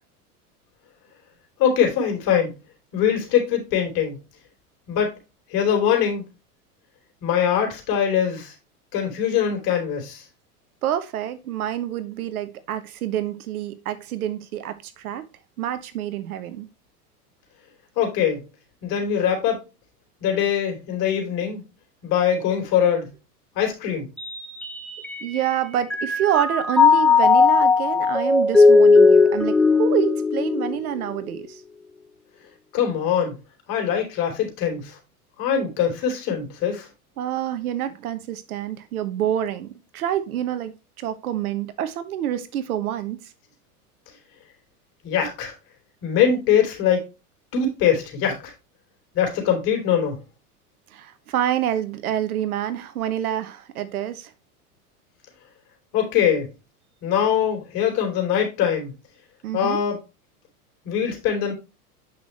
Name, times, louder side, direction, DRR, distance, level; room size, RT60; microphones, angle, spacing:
voice 1, 1.6-2.5 2.9-4.2 4.9-5.2 5.5-6.3 7.2-8.5 8.9-10.2 18.0-18.4 18.8-19.6 20.2-21.6 22.0-23.1 23.6-24.1 32.7-33.4 33.7-35.0 35.4-36.9 45.0-45.5 46.0-47.0 47.5-48.5 49.1-50.2 55.9-56.5 57.0-58.9 59.5-60.0 60.9-61.5, left 8 dB, 50° left, 3.5 m, -22 dB
voice 2, 10.8-15.2 15.6-16.7 25.2-31.6 37.2-39.7 39.9-43.2 50.9-54.3 59.4-59.8, right 11 dB, 65° right, 1.1 m, -27 dB
Mallet percussion, 24.2-25.5 25.9-31.3, left 4 dB, ahead, 1.0 m, -17 dB
8.2 x 5.8 x 3.2 m
hypercardioid pair, 90°, 46 cm